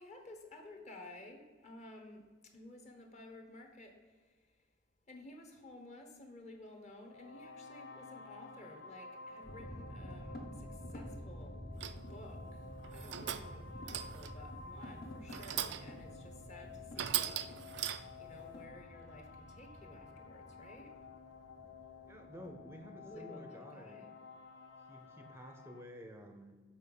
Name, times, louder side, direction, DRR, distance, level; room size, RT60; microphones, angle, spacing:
voice 1, 0.0-4.2 5.1-11.6 12.1-17.4 18.2-20.9 23.0-24.1, left 1 dB, 40° left, 3 dB, 1.0 m, -54 dB
sound 1, 7.0-25.8, left 4 dB, 85° left, 0.5 m, -53 dB
sound 2, 9.4-23.1, equal, 55° left, 1.1 m, -50 dB
sound 3, 11.8-12.2 12.8-13.6 13.9-14.4 15.3-16.0 16.4-16.5 17.0-18.3, right 11 dB, 65° right, 0.4 m, -39 dB
voice 2, 22.1-24.0 24.8-26.6, equal, 15° right, 4 dB, 0.6 m, -51 dB
6.7 x 4.3 x 5.3 m, 1.4 s
head